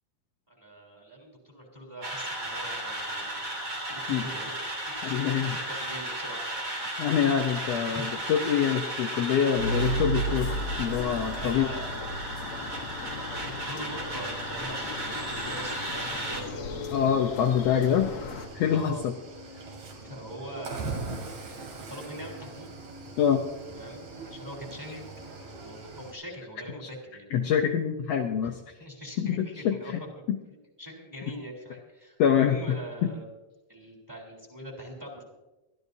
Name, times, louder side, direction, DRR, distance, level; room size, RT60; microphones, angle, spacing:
voice 1, 0.5-3.5 3.9-4.6 4.9-6.4 6.7-7.0 7.9-8.1 11.3-12.1 12.8-16.8 18.6-19.0 20.0-22.7 23.7-27.3 28.4-28.5 28.8-30.2 30.5-33.3 33.7-35.2, equal, 5° right, 1 dB, 3.3 m, -42 dB
sound 1, 2.0-16.4, right 1 dB, 35° right, 3.7 m, -35 dB
voice 2, 5.0-5.7 7.0-10.5 10.8-11.7 16.9-18.1 18.5-19.1 23.2-23.4 26.8-26.9 27.3-28.5 29.2-30.0 30.3-30.4 32.2-32.6, left 8 dB, 80° left, 3 dB, 1.4 m, -25 dB
sound 2, 9.6-18.5, equal, 65° left, 2.0 m, -35 dB
Cricket / Waves surf, 9.8-26.1, right 3 dB, 55° right, 3.6 m, -43 dB
23.5 x 13.5 x 2.7 m, 1.1 s
omnidirectional pair, 3.9 m